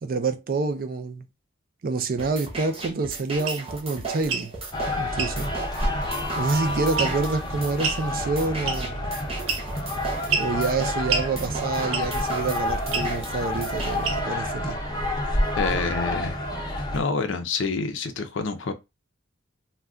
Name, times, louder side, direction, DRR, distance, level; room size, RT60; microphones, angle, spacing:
voice 1, 0.0-1.3 1.8-4.5 5.0-5.5 6.4-9.1 10.4-14.8, right 3 dB, 45° right, 0.4 m, -27 dB
sound 1, 2.2-14.2, right 3 dB, 30° right, 0.8 m, -36 dB
sound 2, 3.4-3.6 4.2-4.5 5.2-5.4 7.0-7.3 7.8-8.0 8.7-9.0 9.5-9.8 10.3-10.5 11.1-11.3 11.9-12.2 12.9-13.1 14.0-14.4, right 5 dB, 90° right, 0.6 m, -27 dB
sound 3, 4.7-17.0, left 1 dB, 20° left, 0.6 m, -29 dB
voice 2, 15.6-16.4 16.9-18.7, left 4 dB, 65° left, 0.5 m, -27 dB
2.3 x 2.2 x 3.5 m
head